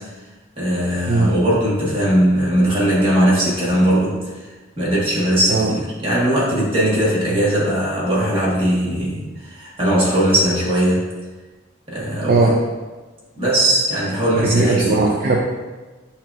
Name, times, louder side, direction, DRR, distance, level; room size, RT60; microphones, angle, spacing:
voice 1, 0.6-4.2 4.8-11.1 11.9-12.4 13.4-15.1, right 1 dB, 25° right, -7 dB, 1.3 m, -19 dB
voice 2, 12.3-12.6 14.3-15.4, right 3 dB, 45° right, -1 dB, 0.4 m, -18 dB
7.5 x 2.8 x 2.4 m, 1.3 s
head